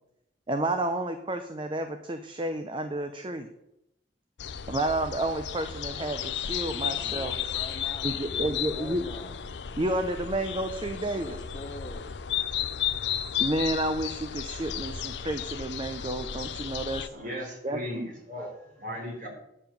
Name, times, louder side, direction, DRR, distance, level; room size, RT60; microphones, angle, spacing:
voice 1, 0.5-3.5 4.7-7.3 8.0-9.0 9.7-11.4 13.4-17.1 17.6-18.1, right 1 dB, 30° right, 7 dB, 0.7 m, -30 dB
sound 1, 4.4-17.1, left 9 dB, 80° left, 0.6 m, -33 dB
voice 2, 6.9-9.4 11.0-12.1, left 1 dB, 25° left, 6 dB, 1.1 m, -44 dB
voice 3, 16.7-19.3, equal, 50° right, 0 dB, 3.9 m, -38 dB
9.8 x 7.0 x 7.0 m, 0.82 s
head